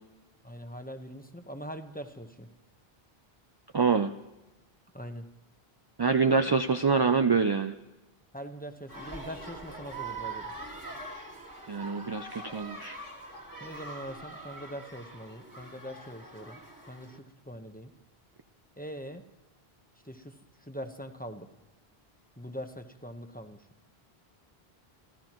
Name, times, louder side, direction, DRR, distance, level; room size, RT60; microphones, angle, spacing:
voice 1, 0.4-2.5 4.9-5.2 6.2-6.6 8.3-10.5 13.6-17.2 17.4-17.9 18.8-19.2 20.0-21.5 22.4-23.6, equal, 10° left, 6 dB, 0.9 m, -42 dB
voice 2, 3.7-4.1 6.0-7.7 11.7-13.0, right 5 dB, 40° right, 8 dB, 0.3 m, -25 dB
sound 1, 8.9-17.2, right 3 dB, 20° right, 1.8 m, -43 dB
27.5 x 14.0 x 3.0 m, 1.0 s
omnidirectional pair, 1.0 m